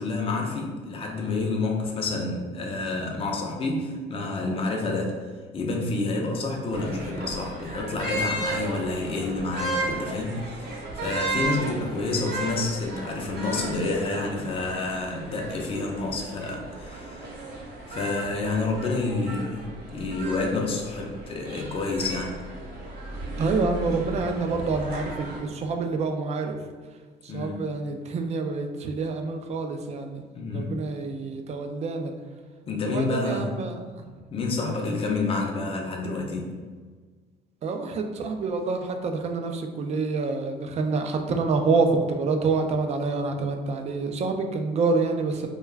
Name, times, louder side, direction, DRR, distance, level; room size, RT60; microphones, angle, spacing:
voice 1, 0.0-5.2 5.5-17.4 17.9-22.3 27.3-27.7 30.3-30.8 32.7-33.5 34.3-36.5, left 3 dB, 35° left, 1 dB, 0.5 m, -29 dB
sound 1, 6.7-25.4, right 2 dB, 65° right, 0.8 m, -35 dB
voice 2, 23.4-26.6 27.2-30.2 30.5-32.1 32.8-33.8 34.6-34.9 37.6-45.5, right 4 dB, 40° right, 5 dB, 0.4 m, -27 dB
2.3 x 2.2 x 3.2 m, 1.5 s
cardioid pair, 110°, 17 cm